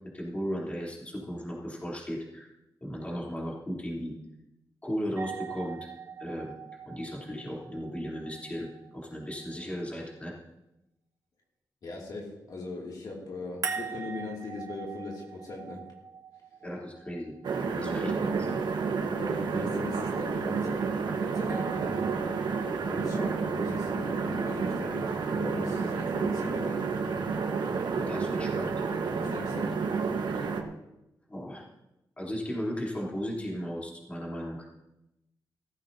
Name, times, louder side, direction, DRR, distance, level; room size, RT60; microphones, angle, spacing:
voice 1, 0.1-2.5 2.8-4.2 4.8-5.9 6.2-6.5 6.9-10.3 16.6-18.5 23.1-23.3 28.1-28.7 30.3-30.5 31.3-31.7 32.2-34.7, equal, 15° left, -4 dB, 3.5 m, -36 dB
sound 1, 5.2-10.1 13.6-17.7 21.5-22.7, right 6 dB, 45° right, 2.2 m, -42 dB
voice 2, 11.8-15.8 17.7-18.3 19.1-20.9 21.2-22.0 22.3-22.6 22.8-26.9 29.2-29.8, left 2 dB, 60° left, -2 dB, 2.6 m, -39 dB
sound 2, 17.4-30.6, right 5 dB, 75° right, 1.4 m, -30 dB
16.0 x 14.5 x 2.8 m, 0.91 s
wide cardioid pair, 120°, 8 cm